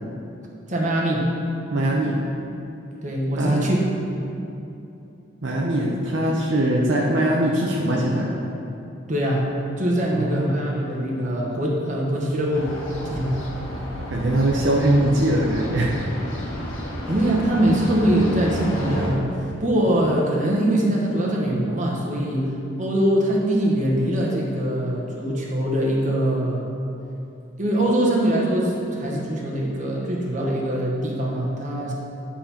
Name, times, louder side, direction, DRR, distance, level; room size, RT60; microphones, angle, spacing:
voice 1, 0.7-1.3 3.0-3.8 9.1-9.5 9.8-12.7 13.1-13.4 17.1-19.3 19.6-22.5 22.8-26.6 27.6-31.9, right 1 dB, 35° right, -2 dB, 1.3 m, -22 dB
voice 2, 1.7-2.2 3.4-3.7 5.4-8.3 10.1-10.7 14.1-15.9 16.6-16.7, right 1 dB, 65° right, -3 dB, 0.8 m, -21 dB
sound 1, 12.5-19.1, equal, 80° left, 1.8 m, -32 dB
10.5 x 4.3 x 5.8 m, 2.9 s
head